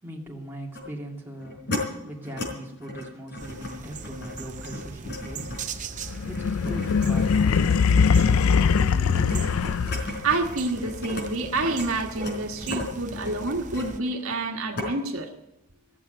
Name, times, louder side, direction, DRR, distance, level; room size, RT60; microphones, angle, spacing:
voice 1, 0.0-1.6 2.0-5.8 6.2-9.3, right 1 dB, 10° right, -3 dB, 2.4 m, -39 dB
sound 1, 0.7-0.9 1.4-1.8 2.2-2.5 2.8-11.2 11.5-14.4 14.8-14.9, left 2 dB, 50° left, 4.1 m, -36 dB
sound 2, 3.4-14.0, right 4 dB, 35° right, 0.7 m, -40 dB
sound 3, 6.1-10.3, left 6 dB, 75° left, 0.4 m, -21 dB
voice 2, 10.2-15.3, right 3 dB, 75° right, 2 dB, 1.5 m, -28 dB
15.0 x 7.4 x 9.0 m, 0.90 s
head